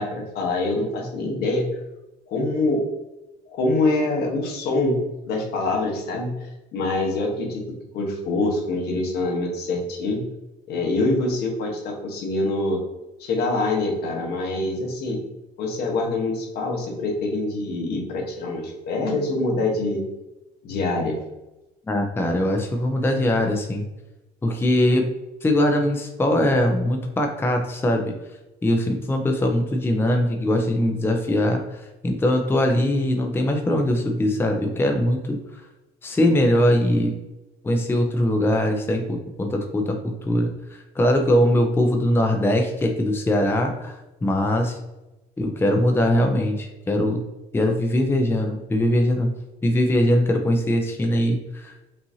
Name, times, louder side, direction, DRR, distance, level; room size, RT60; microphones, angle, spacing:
voice 1, 0.0-1.7 2.3-2.8 3.5-5.0 5.3-7.6 7.9-10.2 10.7-12.8 13.2-15.2 15.6-20.0 20.6-21.2, left 2 dB, 70° left, 1 dB, 1.2 m, -25 dB
voice 2, 21.9-23.9 24.4-25.1 25.4-28.1 28.6-35.4 36.0-37.1 37.6-40.5 41.0-44.8 45.4-47.2 47.5-49.3 49.6-51.7, left 1 dB, 15° left, 4 dB, 0.5 m, -21 dB
5.5 x 2.6 x 2.8 m, 1.0 s
cardioid pair, 110°, 17 cm